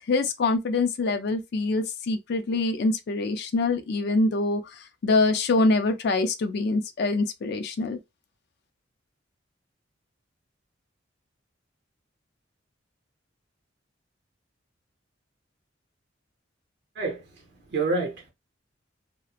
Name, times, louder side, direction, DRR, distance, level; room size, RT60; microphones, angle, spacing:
voice 1, 0.1-8.0, left 3 dB, 55° left, 0.4 m, -25 dB
voice 2, 16.9-17.4 17.7-18.3, right 3 dB, 55° right, 0.7 m, -28 dB
2.9 x 2.0 x 2.3 m
head